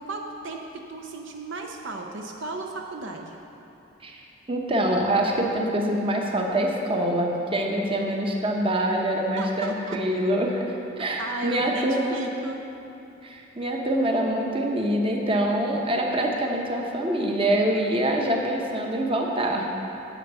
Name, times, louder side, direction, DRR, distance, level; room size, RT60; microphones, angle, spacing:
voice 1, 0.0-3.4 9.4-10.0 10.9-12.6, right 2 dB, 60° right, 2 dB, 0.6 m, -35 dB
voice 2, 4.5-10.6 11.0-12.2 13.2-19.7, right 1 dB, 25° right, 0 dB, 0.9 m, -25 dB
10.0 x 7.9 x 5.5 m, 2.9 s
head